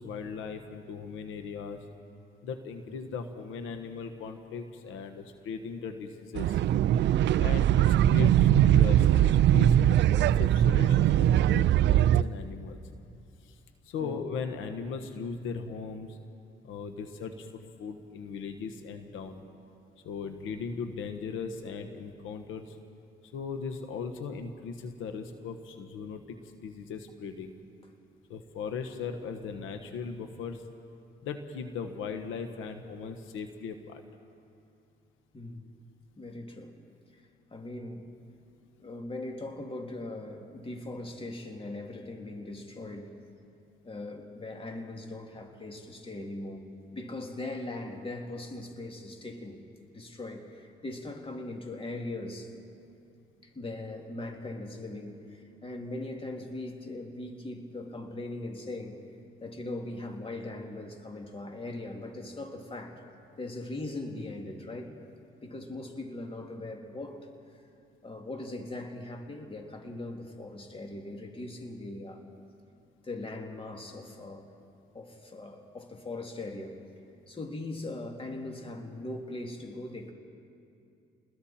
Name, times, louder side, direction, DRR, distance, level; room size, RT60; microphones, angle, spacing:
voice 1, 0.0-1.9 2.4-6.6 7.4-12.8 13.4-13.6 13.8-16.2 16.6-19.4 20.0-22.8 23.3-27.5 28.3-30.6 31.2-34.0, left 5 dB, 90° left, 6 dB, 1.4 m, -38 dB
sound 1, 6.4-12.2, right 11 dB, 65° right, 0.4 m, -21 dB
voice 2, 35.3-35.6 36.2-36.7 37.1-37.2 37.5-38.1 38.8-43.1 43.8-46.6 46.9-49.6 49.9-52.5 53.4-59.0 59.4-63.0 63.4-65.0 65.4-67.3 68.0-72.3 73.0-74.5 74.9-76.8 77.3-80.1, left 2 dB, 25° left, 2 dB, 2.7 m, -40 dB
30.0 x 21.0 x 4.4 m, 2.5 s
cardioid pair, 90°, 20 cm